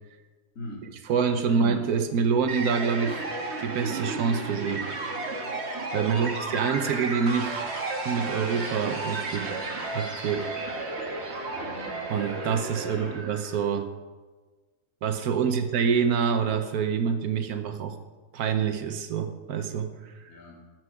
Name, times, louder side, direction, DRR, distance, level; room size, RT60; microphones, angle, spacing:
voice 1, 0.5-0.9 1.5-1.7 6.0-6.2 9.3-9.7 11.5-11.9 12.9-13.2 15.4-15.6 20.3-20.6, equal, 55° left, -2 dB, 2.5 m, -42 dB
voice 2, 1.0-3.2 3.6-4.9 5.9-7.6 8.0-9.5 9.9-10.5 12.1-13.9 15.0-18.0 18.3-20.3, right 6 dB, 75° right, 7 dB, 1.2 m, -26 dB
sound 1, 2.5-13.6, right 3 dB, 45° right, 1.4 m, -33 dB
14.0 x 6.0 x 4.9 m, 1.3 s
omnidirectional pair, 1.7 m